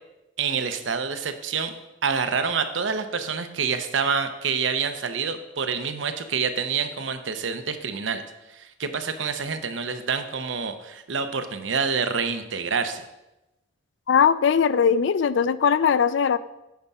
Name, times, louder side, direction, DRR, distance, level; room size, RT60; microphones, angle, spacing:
voice 1, 0.4-1.7 2.0-8.2 8.5-13.0, right 5 dB, 90° right, 9 dB, 0.8 m, -27 dB
voice 2, 14.1-16.4, left 7 dB, 75° left, 16 dB, 0.4 m, -20 dB
9.4 x 5.6 x 4.8 m, 0.96 s
head